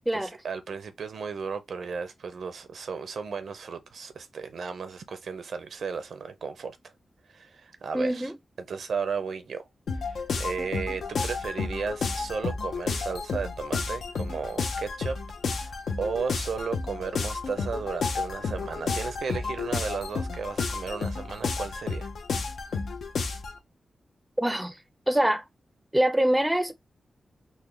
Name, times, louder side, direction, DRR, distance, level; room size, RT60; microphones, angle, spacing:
voice 1, 0.1-6.8 7.3-8.3 8.6-9.7 10.0-15.2 15.4-22.1, right 5 dB, 85° right, 0.6 m, -34 dB
voice 2, 7.9-8.3 24.4-24.7 25.1-25.4 25.9-26.7, right 1 dB, 5° right, 0.4 m, -24 dB
sound 1, 9.9-23.6, left 4 dB, 90° left, 0.6 m, -31 dB
3.8 x 2.2 x 3.2 m
wide cardioid pair, 100°, 0 cm